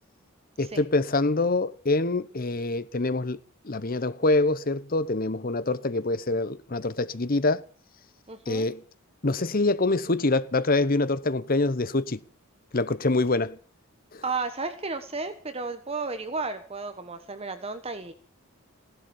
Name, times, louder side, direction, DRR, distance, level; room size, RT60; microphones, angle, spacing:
voice 1, 0.6-3.4 3.6-7.6 8.5-8.8 9.2-12.2 12.7-13.6 14.1-14.2, left 2 dB, 45° left, 0.9 m, -25 dB
voice 2, 8.3-8.6 14.2-18.1, right 3 dB, 30° right, 1.2 m, -33 dB
17.0 x 11.5 x 7.1 m
head